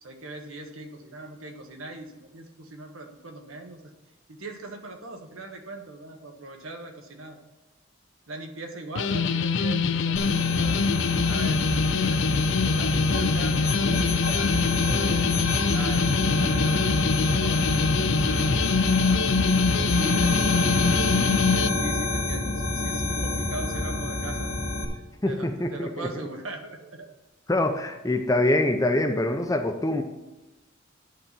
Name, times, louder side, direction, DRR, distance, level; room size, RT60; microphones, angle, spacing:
voice 1, 0.0-3.8 4.3-7.4 8.3-10.8 11.2-12.5 12.8-17.9 18.4-19.3 19.6-21.3 21.8-24.5 25.2-27.1 27.8-27.9, right 2 dB, 80° right, 4 dB, 1.3 m, -40 dB
sound 1, 9.0-21.7, left 5 dB, 60° left, 0.4 m, -24 dB
sound 2, 10.2-24.8, left 2 dB, 85° left, 1.7 m, -27 dB
voice 2, 25.2-26.1 27.5-30.0, left 1 dB, 15° left, 5 dB, 0.6 m, -24 dB
10.0 x 4.2 x 7.3 m, 1.0 s
head